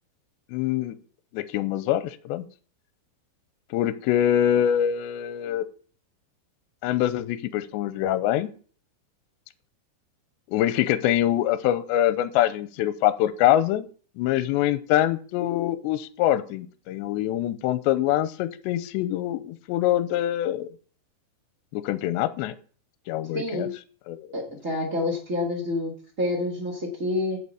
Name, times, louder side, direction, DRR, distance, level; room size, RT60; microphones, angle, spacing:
voice 1, 0.5-1.0 1.3-2.4 3.7-5.7 6.8-8.5 10.5-13.9 14.2-20.7 21.7-22.5 23.1-23.7 24.1-24.4, left 12 dB, 80° left, 14 dB, 2.7 m, -24 dB
voice 2, 23.3-23.7 24.3-25.9 26.2-27.4, left 2 dB, 75° right, 1 dB, 0.7 m, -28 dB
9.8 x 5.5 x 7.9 m, 0.43 s
omnidirectional pair, 5.5 m